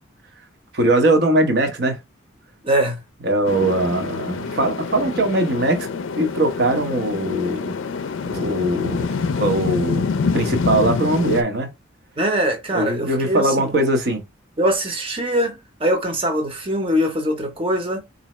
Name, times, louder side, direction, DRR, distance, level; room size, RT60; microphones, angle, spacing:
voice 1, 0.7-2.0 3.2-5.9 6.2-7.7 8.3-10.1 10.3-11.7 12.7-14.2, right 1 dB, 50° right, 0.9 m, -20 dB
voice 2, 2.6-3.0 12.2-13.7 14.6-18.0, equal, 25° right, 0.9 m, -22 dB
sound 1, 3.4-11.4, left 5 dB, 70° left, 0.4 m, -26 dB
4.1 x 2.7 x 3.0 m
head